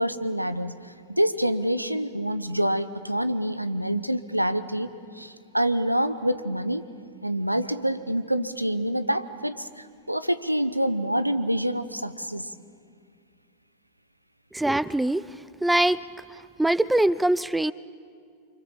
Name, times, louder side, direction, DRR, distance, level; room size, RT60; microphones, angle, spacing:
voice 1, 0.0-6.8 7.2-12.5, equal, 90° right, 13 dB, 1.0 m, -27 dB
voice 2, 14.5-16.0 16.3-17.7, right 1 dB, 5° right, 18 dB, 0.6 m, -23 dB
28.0 x 25.5 x 7.2 m, 2.2 s
figure-of-eight pair, 90°, 0 cm